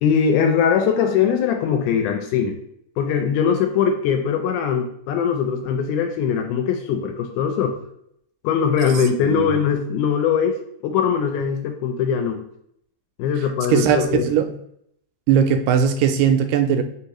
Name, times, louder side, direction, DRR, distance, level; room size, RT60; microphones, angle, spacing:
voice 1, 0.0-2.6 3.0-7.8 8.4-10.6 10.8-12.4 13.2-14.3, left 7 dB, 80° left, 5 dB, 1.9 m, -21 dB
voice 2, 13.7-14.5 15.3-16.8, right 8 dB, 85° right, 8 dB, 2.2 m, -19 dB
4.7 x 3.4 x 2.9 m, 0.72 s
omnidirectional pair, 3.8 m